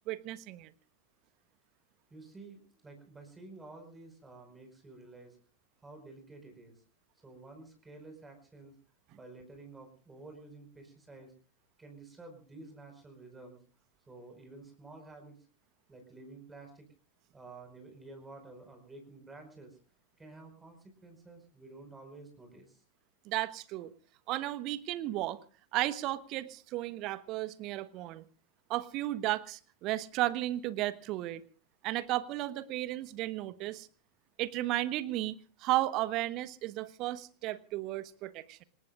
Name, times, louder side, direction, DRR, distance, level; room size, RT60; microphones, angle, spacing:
voice 1, 0.1-0.7 23.3-23.9 24.3-25.4 25.7-28.2 28.7-31.4 31.8-33.9 34.4-38.6, right 16 dB, 40° right, 15 dB, 1.2 m, -34 dB
voice 2, 2.1-5.4 5.8-6.8 7.2-8.7 9.1-11.3 11.8-13.6 14.1-15.4 15.9-16.9 17.3-19.8 20.2-22.8, right 3 dB, 10° right, 5 dB, 5.1 m, -51 dB
27.0 x 20.0 x 2.5 m, 0.38 s
figure-of-eight pair, 90°, 0 cm